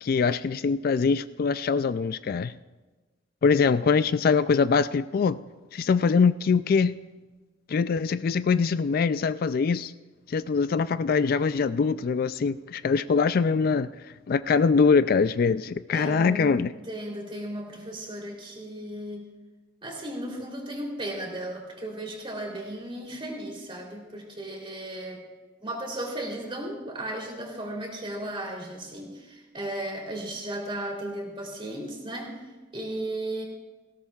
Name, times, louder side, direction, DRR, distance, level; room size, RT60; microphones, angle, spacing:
voice 1, 0.0-2.5 3.4-5.4 5.7-6.9 7.7-9.9 10.3-13.9 14.3-16.7, left 5 dB, 50° left, 14 dB, 0.3 m, -23 dB
voice 2, 15.9-19.3 19.8-25.2 25.6-32.4 32.7-33.4, right 1 dB, 30° right, -1 dB, 3.3 m, -35 dB
18.5 x 17.0 x 2.4 m, 1.2 s
head